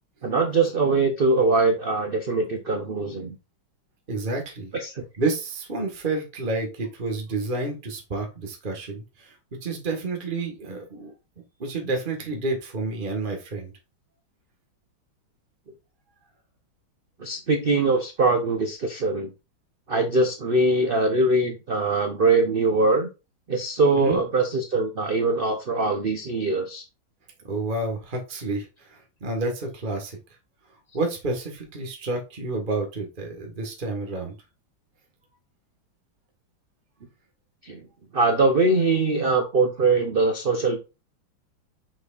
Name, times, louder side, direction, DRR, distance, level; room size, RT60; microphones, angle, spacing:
voice 1, 0.2-3.4 4.7-5.0 17.2-19.3 19.9-23.1 23.5-26.8 37.6-37.8 38.1-40.8, right 3 dB, 55° right, 5 dB, 0.6 m, -22 dB
voice 2, 4.1-4.7 5.2-9.3 9.6-11.1 11.6-13.7 23.9-24.2 27.4-30.2 30.9-34.3, right 3 dB, 25° right, 2 dB, 1.6 m, -29 dB
6.3 x 6.2 x 2.5 m, 0.27 s
omnidirectional pair, 2.3 m